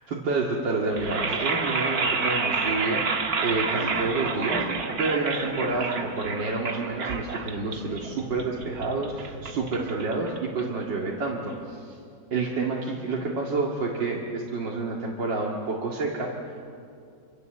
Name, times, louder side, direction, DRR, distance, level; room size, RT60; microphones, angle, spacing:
voice 1, 0.1-4.6 5.0-12.0 12.3-16.7, right 3 dB, 90° right, -3 dB, 3.0 m, -29 dB
sound 1, 0.9-11.0, right 4 dB, 55° right, 2.1 m, -29 dB
27.0 x 26.5 x 8.0 m, 2.4 s
omnidirectional pair, 1.9 m